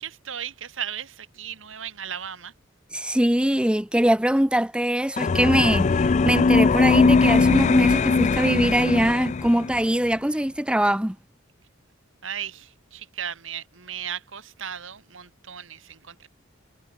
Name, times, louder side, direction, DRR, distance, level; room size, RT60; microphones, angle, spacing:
voice 1, 0.0-2.5 12.2-16.3, right 9 dB, 70° right, 1.9 m, -36 dB
voice 2, 2.9-11.2, right 1 dB, 5° right, 0.8 m, -22 dB
sound 1, 5.2-9.8, left 4 dB, 35° left, 0.4 m, -20 dB
head